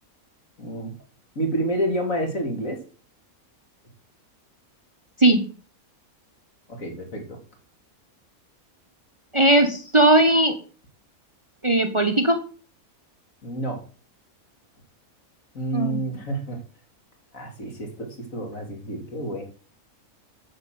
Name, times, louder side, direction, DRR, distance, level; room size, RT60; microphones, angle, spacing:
voice 1, 0.6-0.9 1.3-2.8 6.8-7.4 13.4-13.8 15.5-16.6 17.3-19.4, right 1 dB, 60° left, 3 dB, 3.4 m, -29 dB
voice 2, 9.3-10.6 11.6-12.4 15.7-16.0, right 1 dB, 20° right, 7 dB, 1.3 m, -18 dB
9.8 x 6.7 x 7.8 m, 0.39 s
omnidirectional pair, 1.5 m